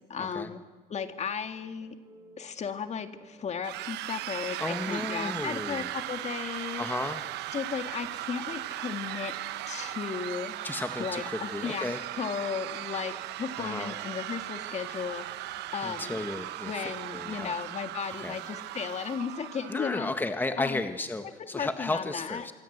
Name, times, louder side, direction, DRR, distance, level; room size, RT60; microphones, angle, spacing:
voice 1, 0.1-0.6 0.9-2.0 2.4-4.6 4.9-6.9 7.5-9.3 9.7-10.5 11.0-11.9 12.2-16.2 16.6-20.1 20.6-20.8 21.4-22.5, left 6 dB, 40° left, 8 dB, 2.0 m, -35 dB
sound 1, 1.5-20.3, right 2 dB, 25° right, 7.6 m, -61 dB
sound 2, 3.6-19.9, right 15 dB, 85° right, 1.1 m, -37 dB
voice 2, 4.6-5.9 6.8-7.2 10.6-12.0 13.6-13.9 15.8-17.6 18.2-18.4 19.7-22.5, left 2 dB, 10° left, 7 dB, 1.5 m, -34 dB
26.0 x 25.0 x 8.1 m, 1.3 s
cardioid pair, 110°, 17 cm